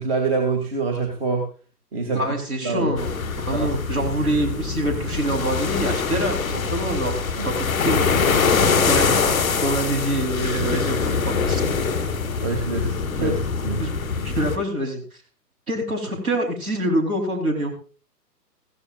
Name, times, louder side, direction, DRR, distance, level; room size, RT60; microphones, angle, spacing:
voice 1, 0.0-1.4 1.9-2.2 2.6-2.9 3.5-4.0 7.0-7.5 8.5-8.7 12.4-13.4 13.6-13.8, right 4 dB, 35° right, 3 dB, 2.7 m, -26 dB
voice 2, 2.1-7.1 7.4-7.5 7.8-8.0 8.9-9.2 9.6-11.6 13.2-13.3 13.8-15.0 15.7-17.7, right 1 dB, 60° right, 4 dB, 4.2 m, -25 dB
sound 1, 3.0-14.6, left 5 dB, ahead, 0.5 m, -23 dB
15.5 x 15.0 x 2.6 m, 0.38 s
figure-of-eight pair, 125°, 49 cm